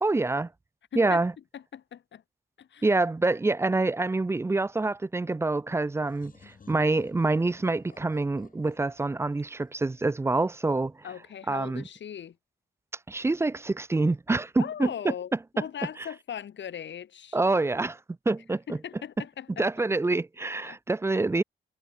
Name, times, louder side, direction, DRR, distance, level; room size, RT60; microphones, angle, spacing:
voice 1, 0.0-0.5 1.0-1.3 2.8-11.0 11.5-11.8 13.1-15.1 17.3-18.0 18.3-18.8 19.6-21.4, right 3 dB, 15° right, 0.4 m, -26 dB
voice 2, 0.9-1.2 1.5-2.2 2.6-2.9 11.0-12.4 14.6-17.4 18.7-19.7 20.6-20.8 21.1-21.2, left 9 dB, 70° left, 2.1 m, -39 dB
sound 1, 6.0-10.6, left 5 dB, 45° left, 2.4 m, -56 dB
cardioid pair, 80°, 20 cm